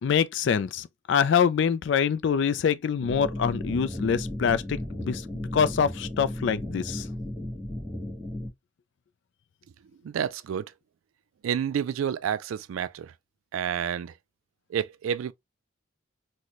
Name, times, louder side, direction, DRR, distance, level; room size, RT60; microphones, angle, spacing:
voice 1, 0.0-5.2 5.5-7.1, left 7 dB, 60° left, 0.3 m, -25 dB
sound 1, 3.0-8.5, left 1 dB, 5° right, 1.1 m, -35 dB
voice 2, 10.0-10.7 11.4-13.1 13.5-14.1 14.7-15.3, right 8 dB, 85° right, 0.3 m, -29 dB
4.0 x 2.1 x 3.0 m
head